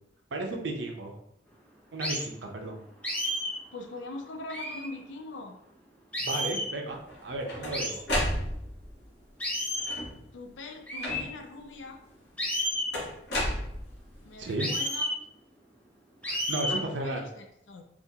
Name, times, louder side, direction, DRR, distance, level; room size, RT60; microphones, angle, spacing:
voice 1, 0.3-1.2 1.9-2.8 6.2-8.3 14.4-14.7 16.3-17.2, right 2 dB, 75° right, 2 dB, 0.6 m, -34 dB
sound 1, 2.0-2.3 3.0-3.6 4.5-4.9 6.1-6.7 7.7-8.0 9.4-10.0 10.9-11.2 12.4-12.9 14.6-15.2 16.2-16.8, equal, 10° left, 0.5 m, -31 dB
voice 2, 3.7-5.6 10.3-12.0 12.4-12.5 14.2-15.1 16.7-17.8, left 2 dB, 90° left, 4 dB, 0.5 m, -42 dB
sound 2, 7.1-8.9 9.8-10.3 11.0-11.6 12.9-14.2, left 1 dB, 65° left, 1.0 m, -32 dB
3.6 x 2.4 x 2.7 m, 0.75 s
head